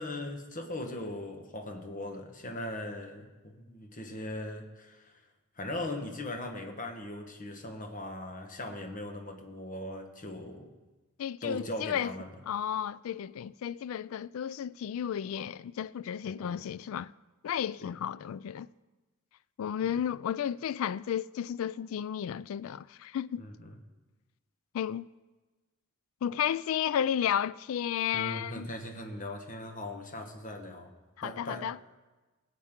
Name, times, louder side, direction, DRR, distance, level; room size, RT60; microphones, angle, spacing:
voice 1, 0.0-5.2 5.5-10.7 11.4-12.3 16.2-16.7 17.8-17.9 23.4-23.8 28.1-30.9 31.2-31.7, left 1 dB, 40° left, 1.2 m, -39 dB
voice 2, 11.2-12.1 12.5-17.1 17.4-18.7 19.6-23.4 24.7-25.1 26.2-28.7 31.2-31.8, left 9 dB, 75° left, 0.3 m, -33 dB
20.0 x 8.2 x 3.7 m
head